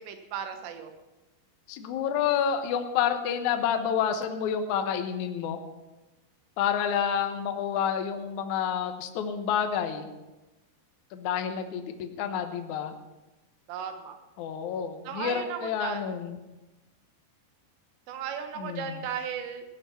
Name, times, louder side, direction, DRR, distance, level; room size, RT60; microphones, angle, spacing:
voice 1, 0.1-0.9 13.7-14.2 15.0-16.0 18.1-19.6, right 7 dB, 85° right, 6 dB, 3.5 m, -35 dB
voice 2, 1.7-5.6 6.6-10.1 11.1-12.9 14.4-16.4 18.6-19.0, left 8 dB, 70° left, 6 dB, 1.8 m, -29 dB
16.5 x 10.5 x 5.8 m, 1.1 s
omnidirectional pair, 5.0 m